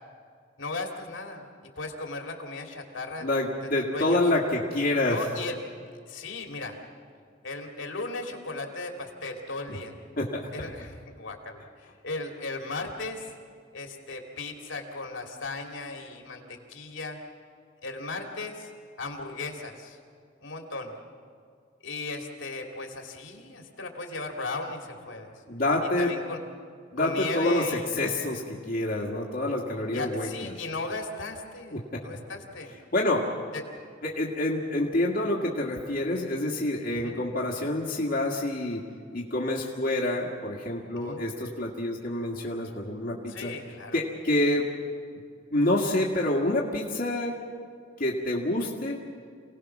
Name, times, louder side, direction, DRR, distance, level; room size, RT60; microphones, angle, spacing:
voice 1, 0.6-1.5 1.8-3.5 3.9-4.2 5.1-5.6 6.1-6.8 7.4-9.9 10.5-13.3 13.7-17.2 17.8-18.7 19.0-20.0 20.4-21.0 21.8-25.3 26.0-26.4 27.0-27.9 29.9-32.7 33.5-33.6 36.9-37.3 41.0-41.3 43.3-44.0, left 3 dB, 80° left, 2 dB, 2.9 m, -36 dB
voice 2, 3.2-5.2 10.2-10.7 25.5-26.1 26.9-30.5 31.7-32.0 32.9-33.3 34.0-38.8 39.1-43.5 43.9-44.7 45.5-47.4 48.0-49.0, left 1 dB, 50° left, -3 dB, 1.9 m, -27 dB
27.5 x 18.5 x 6.1 m, 2.1 s
head